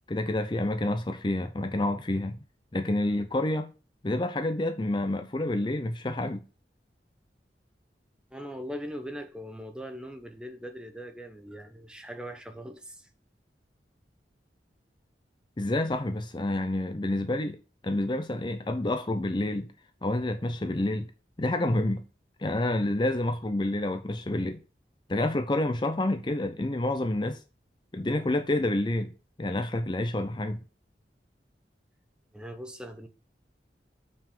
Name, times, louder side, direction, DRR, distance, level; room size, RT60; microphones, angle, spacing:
voice 1, 0.1-2.4 2.7-3.7 4.0-6.4 15.6-17.6 17.8-19.7 20.0-21.1 21.4-22.0 22.4-24.6 25.1-27.4 27.9-29.1 29.4-30.6, left 1 dB, 25° left, 0.6 m, -28 dB
voice 2, 8.3-13.1 32.3-33.1, equal, 5° right, 0.9 m, -40 dB
7.1 x 5.9 x 5.4 m
head